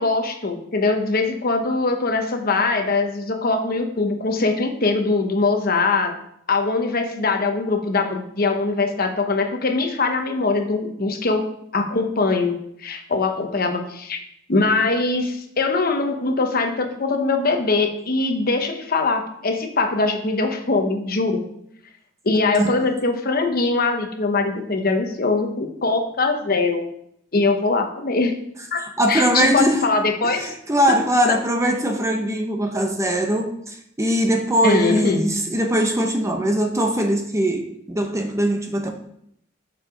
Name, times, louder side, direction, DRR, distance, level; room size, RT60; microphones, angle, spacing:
voice 1, 0.0-6.1 6.5-11.5 11.7-14.2 14.5-21.4 22.2-26.9 27.3-28.3 28.7-28.8 29.1-30.5 30.9-31.0 31.3-31.4 34.6-35.2, left 3 dB, 50° left, 5 dB, 1.0 m, -22 dB
voice 2, 29.0-29.9 30.2-38.9, right 1 dB, 15° right, 3 dB, 0.8 m, -21 dB
7.3 x 4.7 x 5.1 m, 0.72 s
head